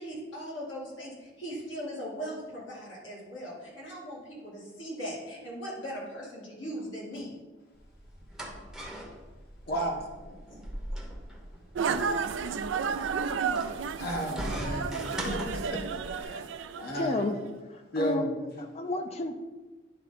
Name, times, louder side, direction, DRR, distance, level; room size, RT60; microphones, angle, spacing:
voice 1, 0.0-7.3 9.7-9.8 10.3-10.6, equal, 80° left, -5 dB, 2.5 m, -39 dB
sound 1, 7.8-16.2, equal, ahead, 0.8 m, -40 dB
voice 2, 9.7-10.0 13.9-16.4 16.7-17.2 17.9-18.4, equal, 55° left, 0 dB, 1.3 m, -33 dB
sound 2, 11.7-17.3, right 6 dB, 75° right, 0.4 m, -32 dB
voice 3, 16.9-17.4 17.7-18.3 18.6-19.4, left 2 dB, 35° left, 7 dB, 0.6 m, -31 dB
10.0 x 3.8 x 4.2 m, 1.2 s
head